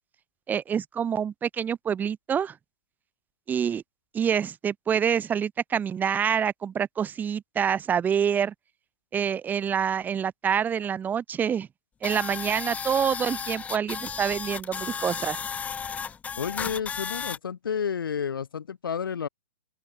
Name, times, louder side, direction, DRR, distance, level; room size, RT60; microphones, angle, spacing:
voice 1, 0.5-2.6 3.5-3.8 4.1-8.5 9.1-11.7 12.0-15.4, right 8 dB, 15° right, 3.0 m, -26 dB
sound 1, 12.0-17.4, left 6 dB, 10° left, 1.3 m, -34 dB
voice 2, 16.4-19.3, left 7 dB, 85° left, 5.8 m, -31 dB
open air
hypercardioid pair, 145°, 11 cm